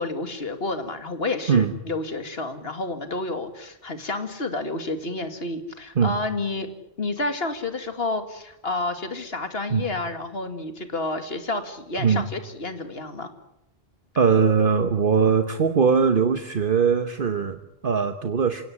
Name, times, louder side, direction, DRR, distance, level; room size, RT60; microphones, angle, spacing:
voice 1, 0.0-6.7 7.0-13.3, left 2 dB, 65° left, 8 dB, 2.5 m, -30 dB
voice 2, 12.0-12.3 14.2-18.6, right 6 dB, 55° right, 9 dB, 1.3 m, -21 dB
27.5 x 17.0 x 9.9 m, 0.84 s
omnidirectional pair, 1.1 m